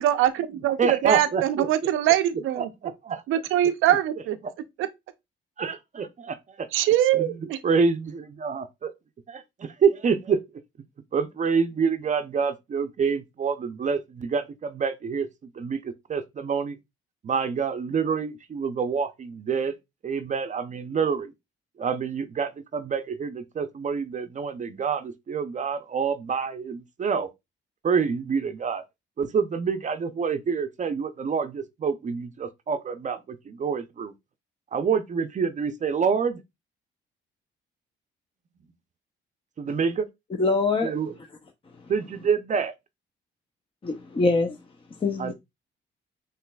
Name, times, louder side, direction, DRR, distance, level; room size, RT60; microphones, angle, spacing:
voice 1, 0.0-2.7 3.3-4.4 4.8-4.9 6.7-7.6, right 12 dB, 85° right, 0.5 m, -23 dB
voice 2, 0.8-1.7 2.6-3.2 5.6-6.7 7.2-7.3 7.6-8.9 9.3-10.4 11.1-15.3 15.5-16.8 17.2-19.8 20.0-21.3 21.8-27.3 27.8-28.8 29.2-34.1 34.7-36.4 39.6-40.1 40.8-41.1 41.9-42.7 45.2-45.3, right 6 dB, 40° right, 0.5 m, -27 dB
voice 3, 40.4-40.9 43.8-44.6 45.0-45.3, left 3 dB, 25° left, 0.6 m, -23 dB
5.7 x 3.0 x 2.2 m
cardioid pair, 90°, 20 cm